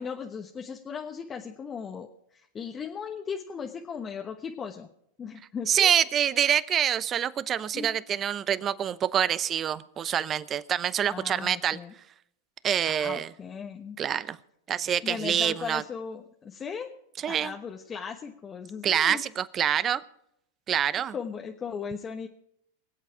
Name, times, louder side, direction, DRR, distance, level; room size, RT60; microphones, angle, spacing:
voice 1, 0.0-4.9 5.2-5.9 7.7-7.9 11.1-11.9 12.9-14.0 15.0-16.9 17.2-19.2 21.1-22.3, left 6 dB, 25° left, 3 dB, 1.2 m, -37 dB
voice 2, 5.7-11.8 12.6-13.3 14.0-14.4 14.7-15.8 17.2-17.5 18.8-20.0 20.7-21.1, right 9 dB, 30° right, 17 dB, 0.8 m, -26 dB
23.0 x 8.2 x 5.0 m, 0.75 s
hypercardioid pair, 110°, 0 cm